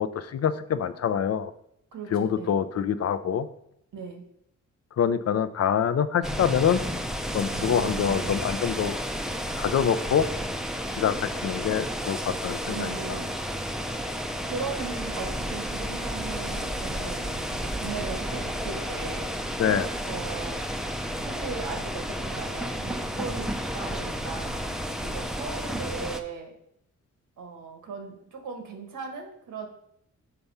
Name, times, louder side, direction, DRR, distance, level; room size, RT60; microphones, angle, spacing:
voice 1, 0.0-1.5 2.1-3.5 5.0-6.8 7.3-9.0 9.6-10.3 11.0-13.2 19.6-19.9, left 8 dB, 55° left, 12 dB, 0.5 m, -25 dB
voice 2, 1.9-2.5 3.9-4.2 7.5-8.4 12.6-13.3 14.4-19.3 20.0-20.6 21.2-24.6 25.0-26.5 27.4-29.7, right 4 dB, 85° right, 3 dB, 1.4 m, -38 dB
sound 1, 6.2-26.2, equal, ahead, 0.5 m, -32 dB
6.8 x 3.5 x 5.5 m, 0.74 s
cardioid pair, 95°, 31 cm